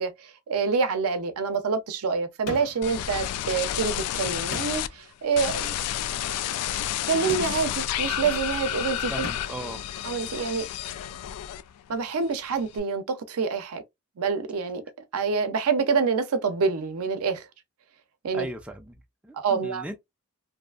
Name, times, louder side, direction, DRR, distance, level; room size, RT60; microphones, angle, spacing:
voice 1, 0.0-5.8 7.1-9.3 10.0-10.7 11.9-13.8 14.2-14.8 15.1-17.5 18.2-18.5 19.3-19.8, right 5 dB, 70° right, 0.5 m, -27 dB
sound 1, 2.5-3.0 4.5-5.1 7.3-7.8 9.2-9.7, left 3 dB, 65° left, 0.8 m, -38 dB
sound 2, 2.8-4.9 5.3-11.9 12.2-12.8, left 11 dB, 90° left, 0.3 m, -30 dB
voice 2, 9.1-9.8 18.3-20.0, right 1 dB, 5° right, 0.3 m, -38 dB
2.6 x 2.4 x 2.3 m
head